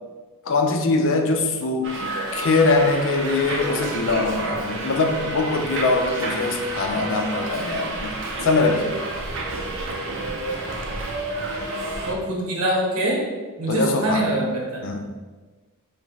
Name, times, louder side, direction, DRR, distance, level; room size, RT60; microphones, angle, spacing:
voice 1, 0.5-8.1 8.4-9.0 13.7-14.3 14.8-15.0, left 3 dB, 60° left, 4 dB, 0.5 m, -22 dB
Subway metro underground, 1.8-12.1, right 2 dB, 60° right, 0.6 m, -30 dB
voice 2, 12.0-13.2 13.6-14.8, right 1 dB, 90° right, -3 dB, 1.2 m, -24 dB
4.9 x 3.1 x 3.1 m, 1.3 s
head